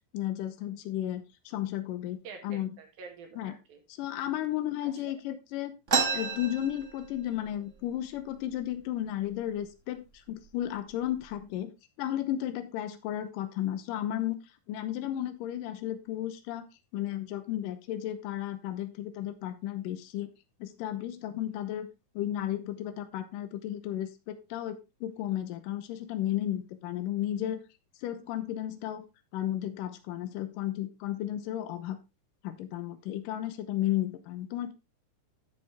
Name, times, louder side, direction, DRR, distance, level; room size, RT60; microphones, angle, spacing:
voice 1, 0.1-2.2 2.4-2.7 3.4-3.6 4.0-5.7 6.1-14.4 14.7-16.7 16.9-20.3 20.6-21.9 22.2-27.6 28.0-29.0 29.3-32.0 32.4-34.7, left 12 dB, 75° left, 10 dB, 2.5 m, -33 dB
voice 2, 2.2-3.8 5.3-5.4, right 5 dB, 85° right, 3 dB, 3.8 m, -47 dB
sound 1, 5.9-7.5 7.8-7.9 8.2-8.8 9.4-9.6 10.3-10.4 10.9-11.4, right 5 dB, 35° right, 1.2 m, -31 dB
11.0 x 6.8 x 3.5 m, 0.26 s
omnidirectional pair, 4.0 m